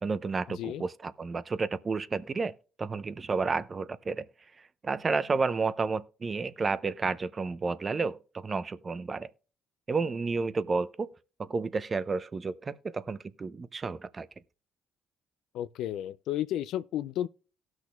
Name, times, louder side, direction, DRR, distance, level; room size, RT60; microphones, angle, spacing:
voice 1, 0.0-4.3 4.6-9.3 9.9-11.1 11.4-14.3, right 4 dB, 40° right, 0.7 m, -31 dB
voice 2, 15.5-17.3, left 12 dB, 75° left, 0.3 m, -32 dB
18.0 x 6.2 x 2.3 m
hypercardioid pair, 50°, 0 cm